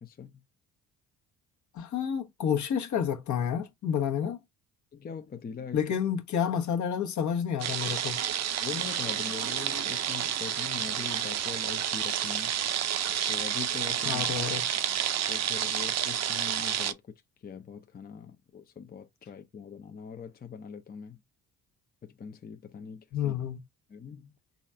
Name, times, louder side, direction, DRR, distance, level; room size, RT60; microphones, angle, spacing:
voice 1, 0.0-0.4 4.9-5.9 8.6-12.6 13.3-14.3 15.3-17.0 17.4-21.2 22.0-23.3 23.9-24.3, left 6 dB, 25° left, 0.6 m, -42 dB
voice 2, 1.7-4.4 5.7-8.2 14.0-14.6 23.1-23.6, left 8 dB, 55° left, 1.1 m, -29 dB
sound 1, 7.6-16.9, right 9 dB, 50° right, 0.7 m, -30 dB
4.1 x 2.4 x 4.3 m
supercardioid pair, 65°, 35 cm